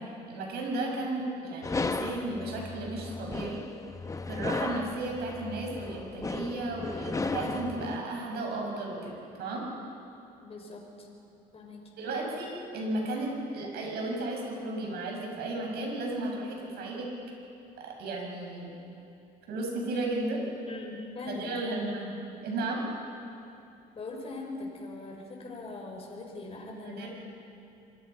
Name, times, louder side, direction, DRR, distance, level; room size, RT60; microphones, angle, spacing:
voice 1, 0.0-3.6 4.3-9.1 9.4-9.7 12.0-17.1 17.8-18.7 19.5-20.4 21.3-22.1 22.4-22.8 26.6-27.1, right 2 dB, 70° right, 0 dB, 6.9 m, -34 dB
sound 1, 1.6-8.0, left 3 dB, 20° left, 1.0 m, -35 dB
voice 2, 10.4-11.1 11.5-11.9 20.7-21.8 23.9-27.1, left 3 dB, 35° left, 0 dB, 5.7 m, -41 dB
26.0 x 23.0 x 5.8 m, 2.8 s
cardioid pair, 110°, 17 cm